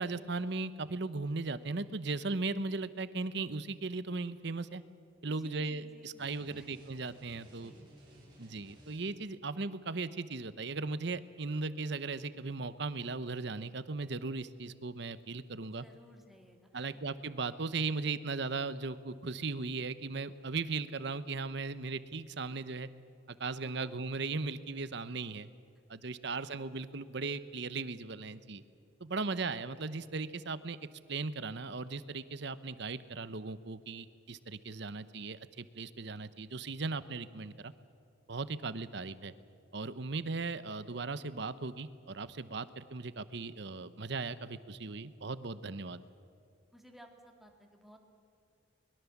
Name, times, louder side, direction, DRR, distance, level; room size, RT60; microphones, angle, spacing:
voice 1, 0.0-4.8 5.2-7.7 8.4-15.9 16.7-22.9 23.3-25.5 25.9-28.6 29.0-30.8 31.1-37.7 38.3-39.3 39.7-46.0, right 3 dB, 60° right, 14 dB, 0.9 m, -37 dB
voice 2, 5.2-6.8 7.5-8.5 15.7-17.0 23.6-23.9 26.5-26.8 29.3-29.4 46.7-48.0, equal, ahead, 2 dB, 2.3 m, -58 dB
sound 1, 6.2-9.4, right 1 dB, 25° right, 6.9 m, -58 dB
23.5 x 21.5 x 7.3 m, 2.4 s
head